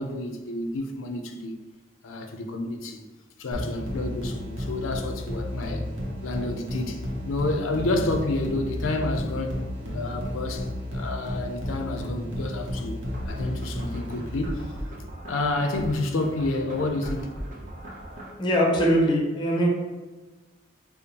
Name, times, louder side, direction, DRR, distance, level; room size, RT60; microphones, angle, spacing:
voice 1, 0.0-1.6 2.0-3.0 3.4-5.8 6.2-9.6 9.9-13.0 13.2-14.7 15.3-17.3, left 2 dB, 90° left, 0.4 m, -29 dB
sound 1, 3.5-15.0, left 1 dB, 75° right, 0.8 m, -33 dB
sound 2, 13.1-18.3, right 1 dB, 40° right, 0.6 m, -38 dB
voice 2, 18.4-19.7, equal, 25° left, 0.6 m, -21 dB
5.1 x 2.0 x 2.8 m
head